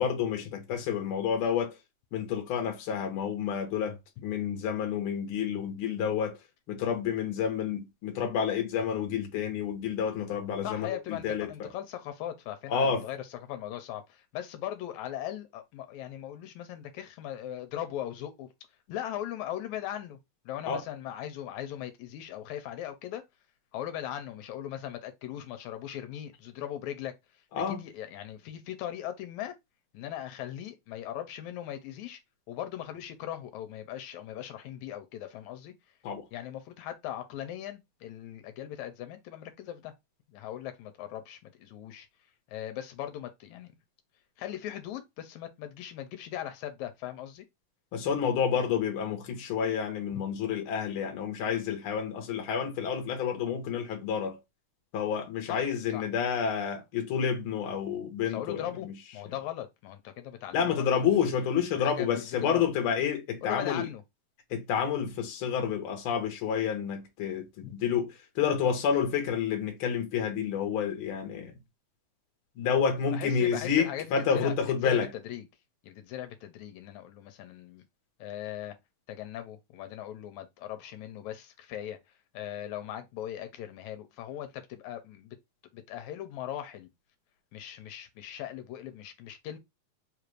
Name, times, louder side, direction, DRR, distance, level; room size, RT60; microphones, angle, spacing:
voice 1, 0.0-1.8 2.1-6.4 6.7-11.7 12.7-13.1 20.7-20.8 27.5-27.8 36.0-36.3 47.9-54.4 54.9-58.9 60.5-63.9 64.5-71.5 72.6-75.1, left 7 dB, 60° left, 1.6 m, -29 dB
voice 2, 10.6-18.5 18.9-20.2 20.5-23.2 23.7-29.6 29.9-32.2 32.5-35.7 36.3-39.9 40.3-42.1 42.5-43.7 44.4-47.4 55.5-56.1 58.3-61.3 61.7-62.6 63.4-64.0 67.6-67.7 73.1-74.5 74.8-75.5 75.8-77.8 78.2-78.8 79.1-82.0 82.3-85.4 85.7-86.9 87.5-89.6, left 11 dB, 85° left, 2.0 m, -39 dB
4.9 x 2.5 x 3.1 m
omnidirectional pair, 3.3 m